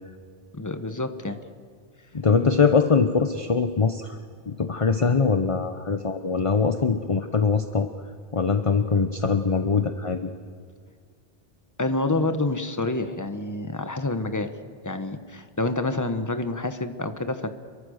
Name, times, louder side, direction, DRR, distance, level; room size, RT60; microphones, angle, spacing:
voice 1, 0.5-1.4 11.8-14.5 14.8-17.5, left 2 dB, 20° left, 8 dB, 1.2 m, -28 dB
voice 2, 2.1-4.2 4.5-7.9 8.3-10.3, left 5 dB, 35° left, 8 dB, 0.9 m, -22 dB
28.0 x 23.0 x 6.5 m, 2.1 s
omnidirectional pair, 1.0 m